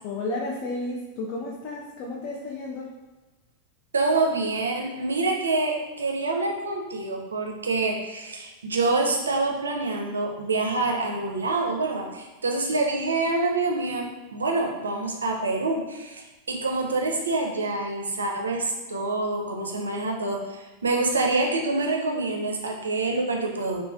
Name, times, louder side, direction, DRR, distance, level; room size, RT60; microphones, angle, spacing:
voice 1, 0.0-2.9, left 2 dB, 45° left, -2 dB, 0.3 m, -32 dB
voice 2, 3.9-23.8, right 3 dB, 75° right, 1 dB, 0.4 m, -26 dB
3.1 x 2.1 x 2.4 m, 1.2 s
figure-of-eight pair, 90°, 0 cm